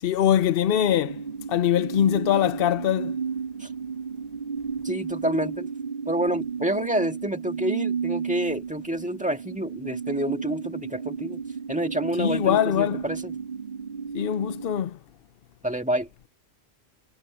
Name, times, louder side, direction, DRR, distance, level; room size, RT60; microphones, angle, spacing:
voice 1, 0.0-1.2 1.5-3.2 12.2-13.0 14.1-15.0, left 10 dB, 60° left, 0.9 m, -22 dB
sound 1, 0.7-14.8, right 6 dB, 50° right, 2.6 m, -33 dB
voice 2, 4.8-5.7 6.1-11.4 11.7-13.4 15.6-16.1, right 1 dB, 5° right, 1.7 m, -28 dB
omnidirectional pair, 1.1 m